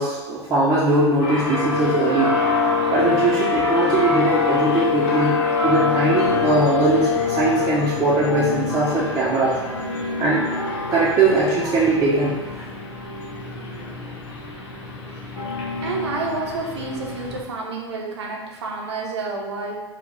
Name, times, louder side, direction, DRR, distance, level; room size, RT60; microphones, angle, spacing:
voice 1, 0.0-2.3 2.9-5.4 5.6-9.6 10.2-10.5 10.9-12.4, right 2 dB, 25° right, -8 dB, 0.9 m, -20 dB
sound 1, 1.2-17.4, left 2 dB, 60° left, 1.0 m, -28 dB
sound 2, 1.4-8.0, left 5 dB, 35° left, 0.7 m, -23 dB
voice 2, 15.8-19.8, right 3 dB, 70° right, -1 dB, 0.8 m, -29 dB
4.5 x 2.4 x 3.9 m, 1.3 s
figure-of-eight pair, 75°, 15 cm